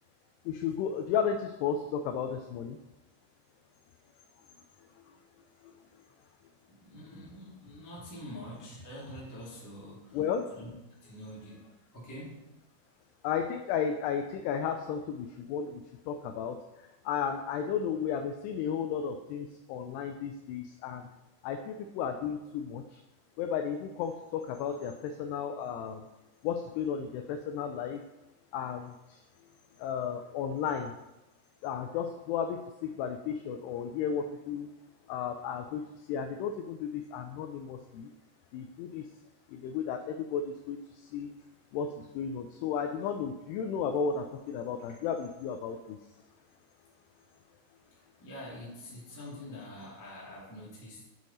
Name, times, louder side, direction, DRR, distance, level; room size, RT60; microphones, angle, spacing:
voice 1, 0.5-2.8 5.1-5.2 5.6-5.7 10.1-10.5 13.2-21.1 21.4-23.0 23.4-26.1 26.4-28.0 28.5-29.2 29.8-30.9 31.6-34.7 35.1-38.1 38.5-39.1 39.5-41.3 41.7-46.0, left 7 dB, 90° left, 6 dB, 2.3 m, -34 dB
voice 2, 6.7-10.2 10.5-10.7 11.0-12.5 48.2-51.0, left 1 dB, 25° left, -7 dB, 0.4 m, -45 dB
6.4 x 6.3 x 4.1 m, 0.96 s
omnidirectional pair, 5.2 m